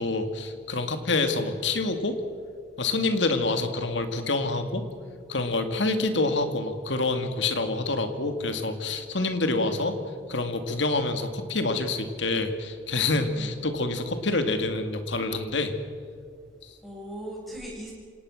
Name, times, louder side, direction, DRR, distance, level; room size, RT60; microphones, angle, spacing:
voice 1, 0.0-2.2 2.8-4.8 5.3-10.0 10.3-15.7 16.6-16.7, left 3 dB, 70° left, 7 dB, 2.2 m, -27 dB
voice 2, 5.8-6.3 13.3-13.5 16.8-17.9, equal, ahead, -4 dB, 7.5 m, -39 dB
27.5 x 18.0 x 6.5 m, 2.2 s
head